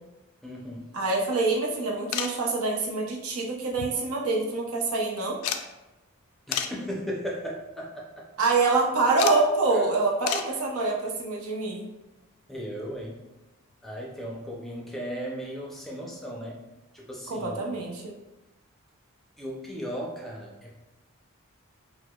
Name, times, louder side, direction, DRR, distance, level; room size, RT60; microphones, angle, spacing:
voice 1, 0.4-0.9 6.5-8.3 9.7-9.9 12.5-13.2 13.8-16.6 16.9-17.8 19.4-20.7, equal, ahead, -3 dB, 0.4 m, -36 dB
voice 2, 0.9-5.4 8.4-11.9 17.3-18.1, right 3 dB, 90° right, -1 dB, 0.6 m, -26 dB
sound 1, 2.1-2.4 3.7-4.3 4.6-4.7 5.4-5.7 6.5-6.8 7.5-7.8 9.2-9.4 10.3-10.6 12.2-12.3 13.7-13.8 14.0-14.1, left 8 dB, 85° left, 0.3 m, -31 dB
4.7 x 2.0 x 2.3 m, 1.0 s
head